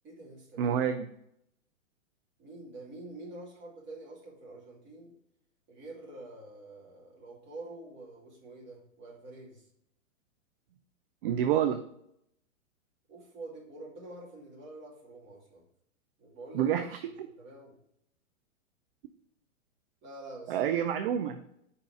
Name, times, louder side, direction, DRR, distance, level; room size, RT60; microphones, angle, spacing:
voice 1, 0.0-0.8 2.4-5.1 5.7-9.7 13.1-15.6 16.2-16.7 17.0-17.7 20.0-20.6, right 2 dB, 30° right, -3 dB, 2.4 m, -47 dB
voice 2, 0.6-1.1 11.2-11.8 16.5-16.9 17.2-17.3 20.5-21.4, right 9 dB, 45° right, 8 dB, 0.5 m, -27 dB
5.2 x 4.2 x 4.6 m, 0.75 s
hypercardioid pair, 120°, 40 cm